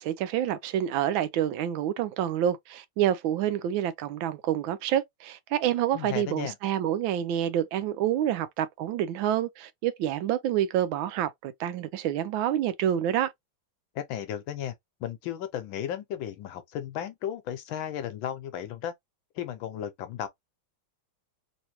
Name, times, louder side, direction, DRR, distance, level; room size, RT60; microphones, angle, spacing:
voice 1, 0.0-13.3, right 11 dB, 80° right, 1.3 m, -28 dB
voice 2, 5.9-6.6 13.9-14.7 15.0-18.9 19.3-20.3, left 10 dB, 80° left, 1.5 m, -34 dB
3.4 x 3.1 x 2.9 m
omnidirectional pair, 2.2 m